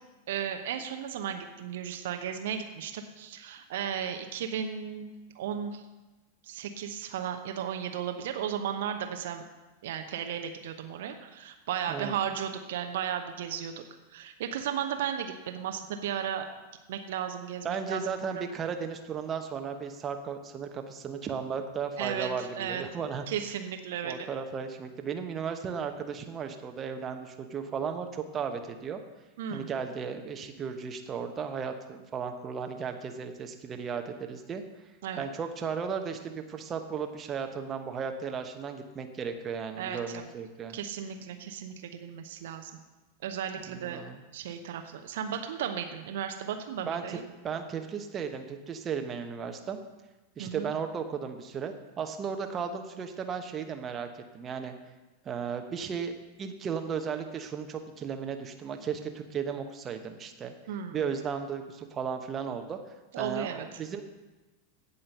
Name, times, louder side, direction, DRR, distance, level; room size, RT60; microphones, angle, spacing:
voice 1, 0.3-5.8 6.4-9.4 9.8-13.8 14.1-16.5 16.9-18.0 18.3-18.4 22.0-22.8 23.3-24.3 29.4-29.7 35.0-35.3 39.8-40.3 40.7-42.7 43.2-44.0 44.3-47.2 50.4-50.7 60.7-61.0 63.1-63.7, right 8 dB, 55° right, 6 dB, 0.9 m, -35 dB
voice 2, 17.6-23.2 24.0-29.0 29.5-34.6 35.2-40.8 43.7-44.2 46.9-47.2 47.4-49.8 50.4-54.1 54.3-54.7 55.2-56.1 56.4-60.5 60.9-62.8 63.2-64.0, right 6 dB, 25° right, 5 dB, 1.1 m, -35 dB
16.5 x 5.6 x 6.8 m, 1.1 s
figure-of-eight pair, 90°, 0 cm